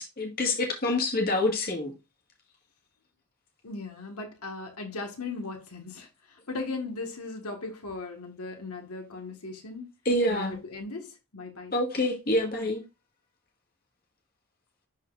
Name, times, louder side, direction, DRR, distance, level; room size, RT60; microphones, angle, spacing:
voice 1, 0.0-1.9 10.1-10.6 11.7-12.8, left 1 dB, 40° left, 1.9 m, -27 dB
voice 2, 3.6-9.9 10.3-11.7 12.6-12.7, left 3 dB, 80° left, 1.7 m, -38 dB
11.5 x 4.0 x 2.5 m
head